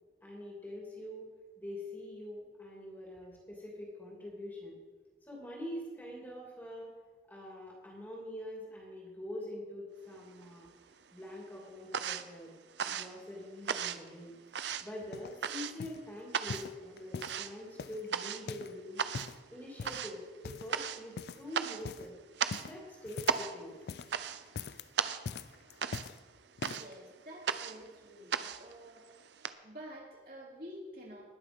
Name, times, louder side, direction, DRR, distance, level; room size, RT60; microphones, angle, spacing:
voice 1, 0.2-1.3 1.6-4.8 5.3-6.9 7.3-10.7 11.1-12.5 12.8-14.4 14.8-19.1 19.5-22.2 22.6-23.8, left 1 dB, 10° left, -3 dB, 2.8 m, -44 dB
sound 1, 10.1-10.9 11.2-29.5, right 7 dB, 85° right, 0.6 m, -37 dB
sound 2, 14.6-15.4 15.8-16.1 16.5-17.4 17.8-18.8 19.0-19.4 19.8-20.1 20.4-20.9 21.2-21.5 21.8-22.1 22.5-23.5 23.8-24.2 24.5-24.9 25.2-26.2 26.6-26.9 27.6-27.7, left 5 dB, 70° left, 0.4 m, -43 dB
voice 2, 26.6-29.1 29.6-31.2, equal, 55° right, -5 dB, 3.7 m, -49 dB
19.5 x 6.7 x 5.3 m, 1.4 s
head